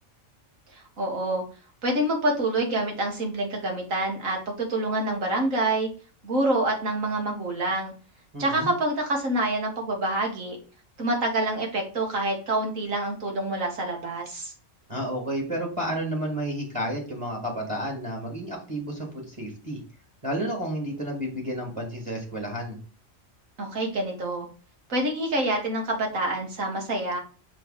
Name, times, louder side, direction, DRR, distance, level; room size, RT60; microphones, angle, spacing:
voice 1, 0.7-1.4 1.8-5.9 6.2-7.9 8.4-10.6 11.0-14.5 23.6-24.5 24.9-27.2, right 1 dB, 85° right, 1 dB, 2.0 m, -27 dB
voice 2, 8.3-8.7 14.9-19.8 20.2-22.8, equal, 25° right, -1 dB, 1.7 m, -31 dB
6.2 x 3.2 x 4.8 m, 0.36 s
omnidirectional pair, 1.4 m